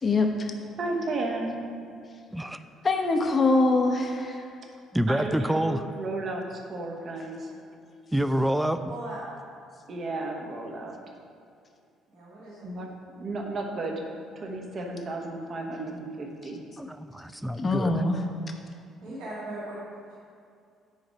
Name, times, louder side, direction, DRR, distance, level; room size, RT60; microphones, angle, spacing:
voice 1, 0.0-0.5 2.8-4.5 17.6-18.2, left 3 dB, 30° left, 4 dB, 0.9 m, -23 dB
voice 2, 0.8-1.7 5.1-7.6 9.9-11.0 12.6-14.1 14.4-16.6, right 2 dB, 40° right, 2 dB, 1.2 m, -33 dB
voice 3, 2.3-2.6 4.9-5.8 8.1-8.8 16.8-18.0, right 1 dB, 5° right, 10 dB, 0.4 m, -27 dB
voice 4, 8.9-9.3 12.1-12.7 19.0-19.8 20.1-20.2, right 1 dB, 60° right, -7 dB, 2.0 m, -38 dB
9.1 x 5.1 x 5.2 m, 2.4 s
figure-of-eight pair, 50°, 0 cm